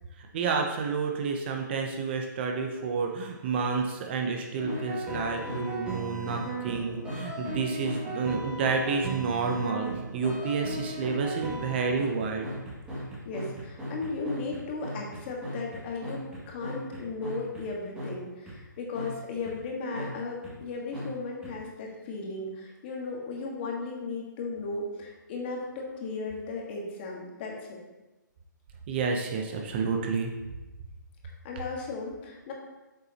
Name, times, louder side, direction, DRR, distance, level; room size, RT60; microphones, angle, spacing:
voice 1, 0.2-12.5 28.9-30.3, right 5 dB, 30° right, 2 dB, 0.7 m, -30 dB
sound 1, 4.6-17.6 18.0-18.1 18.5-18.6 18.9-19.1 19.4-19.5 19.9-20.1 20.4-20.5 20.9-21.1 21.4-21.5, right 1 dB, 10° right, 2.1 m, -36 dB
voice 2, 13.2-27.8 31.2-32.5, left 3 dB, 30° left, 0 dB, 1.6 m, -36 dB
8.4 x 7.0 x 2.9 m, 1.1 s
hypercardioid pair, 160°, 11 cm